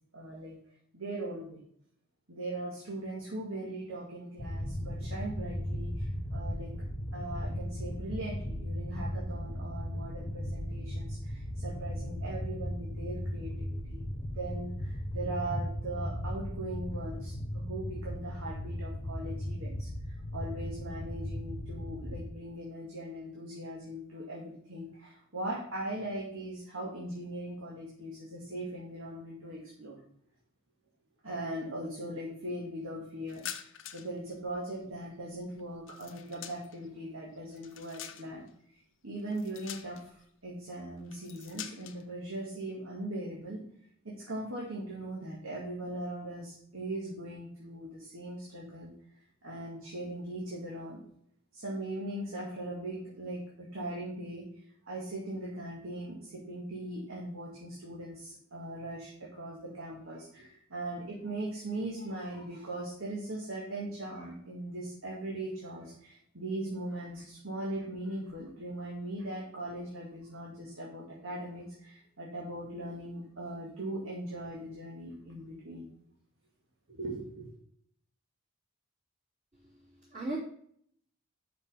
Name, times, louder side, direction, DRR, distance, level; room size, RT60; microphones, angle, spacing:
voice 1, 0.1-0.6 0.9-1.6 2.3-6.7 7.1-19.9 20.3-30.0 31.2-33.4 33.9-38.5 39.0-43.6 44.0-48.9 49.4-51.0 51.5-54.5 54.9-75.9 76.9-77.5, right 1 dB, 80° right, -4 dB, 2.1 m, -40 dB
sound 1, 4.4-22.3, equal, 25° left, 1.2 m, -37 dB
sound 2, 33.3-34.2 34.5-36.9 37.3-38.5 39.3-40.2 41.1-42.0, left 10 dB, 70° left, 0.8 m, -45 dB
voice 2, 79.5-80.4, right 2 dB, 35° right, -10 dB, 3.3 m, -39 dB
6.3 x 5.6 x 6.3 m, 0.66 s
head